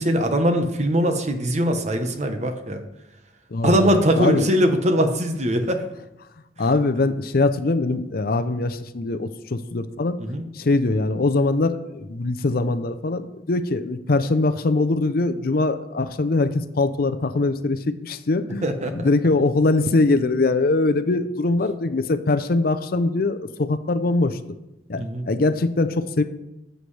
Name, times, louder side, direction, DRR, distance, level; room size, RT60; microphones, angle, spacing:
voice 1, 0.0-2.8 3.6-5.8 10.2-10.5 18.6-19.1 25.0-25.3, equal, 40° right, 6 dB, 1.0 m, -21 dB
voice 2, 3.5-4.5 6.6-10.2 10.5-24.4 24.9-26.2, left 3 dB, 55° left, 10 dB, 0.6 m, -22 dB
13.5 x 7.8 x 3.3 m, 0.92 s
head